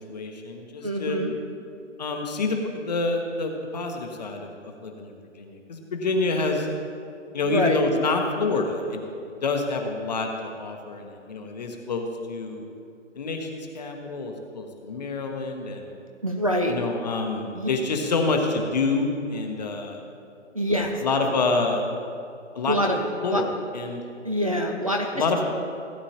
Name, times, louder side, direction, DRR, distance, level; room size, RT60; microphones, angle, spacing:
voice 1, 0.1-1.2 2.0-6.7 7.3-9.0 9.4-12.7 13.1-15.9 16.7-20.0 20.8-21.9 22.5-23.5 23.7-24.0 25.1-25.4, left 3 dB, 35° left, 3 dB, 1.0 m, -27 dB
voice 2, 0.8-1.3 7.4-7.8 16.2-16.8 17.5-17.7 20.5-21.0 22.7-23.0 23.3-23.4 24.2-25.1, equal, 30° right, 0 dB, 0.4 m, -25 dB
16.5 x 8.8 x 2.9 m, 2.5 s
hypercardioid pair, 160°, 38 cm